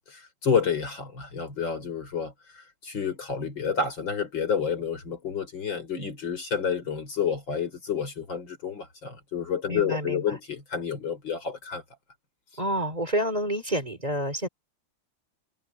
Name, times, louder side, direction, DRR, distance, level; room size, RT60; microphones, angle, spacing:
voice 1, 0.1-11.8, left 6 dB, 90° left, 5.4 m, -29 dB
voice 2, 9.7-10.2 12.6-14.5, right 1 dB, 20° right, 2.9 m, -28 dB
omnidirectional pair, 2.0 m